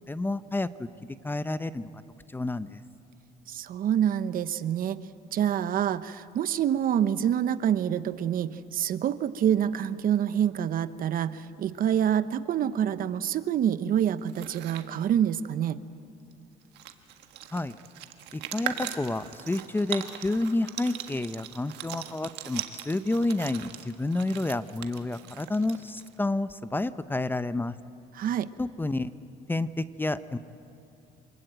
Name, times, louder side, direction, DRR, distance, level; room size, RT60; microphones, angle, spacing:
voice 1, 0.1-0.9 1.2-1.9 2.3-2.8 17.5-17.8 18.3-27.8 28.6-29.1 29.5-30.4, left 2 dB, 10° left, 14 dB, 0.7 m, -29 dB
voice 2, 3.5-5.0 5.3-15.8 28.1-28.5, right 9 dB, 55° right, 14 dB, 0.9 m, -27 dB
sound 1, 14.2-14.9 16.3-16.4 16.6-26.2, right 12 dB, 85° right, 1.6 m, -40 dB
27.5 x 20.5 x 9.0 m, 2.6 s
cardioid pair, 110°, 17 cm